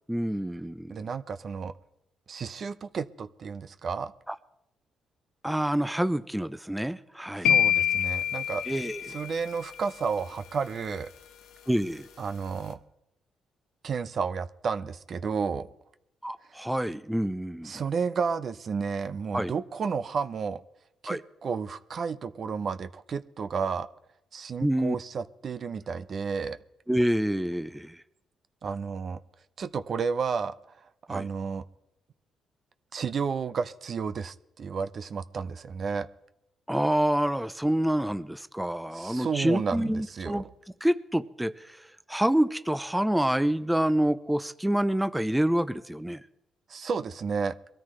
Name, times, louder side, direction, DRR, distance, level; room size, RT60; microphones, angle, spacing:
voice 1, 0.1-1.1 4.3-4.4 5.4-7.5 8.7-9.2 11.7-12.1 16.2-17.8 19.3-19.5 21.1-21.2 24.6-25.0 26.9-28.0 31.1-31.3 36.7-40.5 40.8-46.2, right 1 dB, 5° right, 12 dB, 0.5 m, -27 dB
voice 2, 0.9-1.7 2.3-4.1 7.4-8.6 9.1-11.1 12.2-12.8 13.8-15.7 17.6-20.6 21.0-23.9 24.3-26.6 28.6-29.2 29.6-30.5 31.1-31.6 32.9-36.1 38.9-40.4 46.7-47.6, right 5 dB, 50° right, 12 dB, 0.7 m, -32 dB
sound 1, 7.4-9.6, left 10 dB, 85° left, 0.9 m, -26 dB
22.0 x 13.5 x 3.2 m, 0.84 s
cardioid pair, 90°, 0 cm